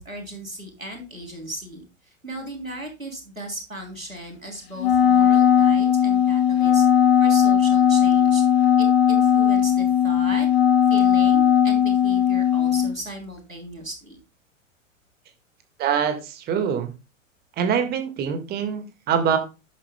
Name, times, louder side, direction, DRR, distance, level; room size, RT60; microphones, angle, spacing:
voice 1, 0.0-6.8 7.2-8.4 8.8-10.5 10.9-14.2, right 1 dB, 90° right, 2 dB, 3.2 m, -36 dB
Wind instrument woodwind instrument, 4.8-12.9, left 9 dB, 50° left, 2.0 m, -18 dB
voice 2, 15.8-16.9 17.6-19.4, right 7 dB, 25° right, 7 dB, 1.7 m, -24 dB
12.5 x 9.1 x 2.2 m, 0.28 s
figure-of-eight pair, 100°, 39 cm